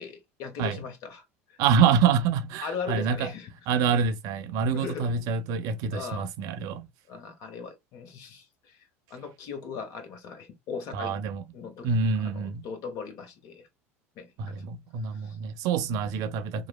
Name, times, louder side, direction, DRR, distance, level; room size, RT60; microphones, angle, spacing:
voice 1, 0.0-1.6 2.6-3.5 4.7-5.1 5.9-6.3 7.1-11.2 11.5-11.9 12.2-13.7 14.2-14.6 15.1-15.4, left 6 dB, 55° left, 0.9 m, -39 dB
voice 2, 1.6-3.3 3.7-6.9 10.9-11.4 11.8-12.6 14.4-16.7, right 6 dB, 55° right, 0.4 m, -26 dB
2.9 x 2.0 x 2.3 m
hypercardioid pair, 75°, 7 cm